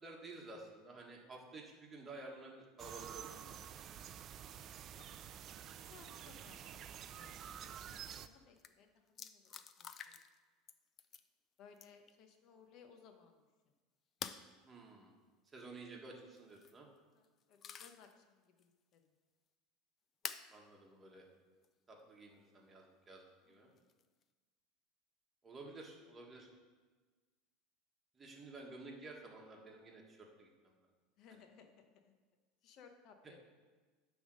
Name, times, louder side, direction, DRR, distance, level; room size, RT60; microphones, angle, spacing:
voice 1, 0.0-3.9 14.6-15.1 15.5-16.9 20.5-21.2 21.9-23.7 25.4-26.5 28.2-30.5, right 3 dB, 20° right, -1 dB, 1.5 m, -52 dB
sound 1, 2.8-8.3, right 9 dB, 40° right, 0.4 m, -50 dB
voice 2, 5.8-6.6 7.1-9.5 9.8-10.2 11.6-13.4 17.1-19.1 23.4-23.8 31.2-32.1 32.6-33.4, left 6 dB, 50° left, 5 dB, 0.9 m, -62 dB
sound 2, 8.6-8.7 9.2-10.4 10.7-11.3 11.8-12.1 14.2-14.5 16.4-16.8 17.2-18.1 18.6-18.7 20.2-20.5 21.6-21.7 23.8-24.2, left 7 dB, 30° left, 0.4 m, -48 dB
10.0 x 3.6 x 6.4 m, 1.4 s
supercardioid pair, 135°, 0 cm